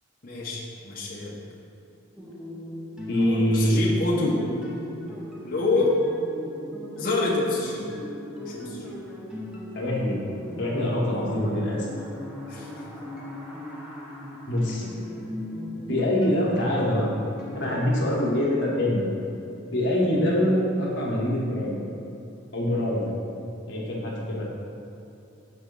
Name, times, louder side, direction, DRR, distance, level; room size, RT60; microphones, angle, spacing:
voice 1, 0.2-1.3 3.2-4.4 5.4-6.0 7.0-7.8 8.4-8.9 12.5-12.7, left 2 dB, 45° left, -5 dB, 1.0 m, -27 dB
sound 1, 2.2-17.9, left 1 dB, 5° right, 0.7 m, -38 dB
voice 2, 3.1-3.8 9.7-10.2 10.5-11.9 14.5-14.8 15.9-17.1 17.5-19.1 19.7-21.8 22.5-23.2 23.7-24.4, left 1 dB, 60° left, -4 dB, 1.3 m, -24 dB
6.5 x 3.7 x 5.4 m, 2.8 s
head